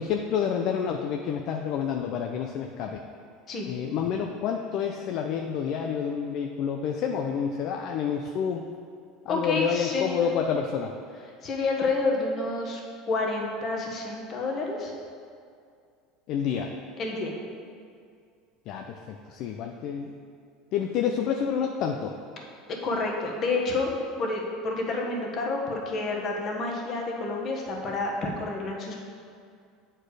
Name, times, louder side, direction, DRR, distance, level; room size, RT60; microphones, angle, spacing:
voice 1, 0.0-3.0 3.7-8.7 9.3-10.9 16.3-16.7 18.7-20.1 20.7-22.1, left 7 dB, 60° left, 3 dB, 0.5 m, -29 dB
voice 2, 9.3-10.3 11.4-12.8 13.1-14.9 17.0-17.3 22.8-29.0, left 3 dB, 45° left, 0 dB, 1.4 m, -29 dB
7.9 x 4.4 x 4.8 m, 2.3 s
supercardioid pair, 100°, 0 cm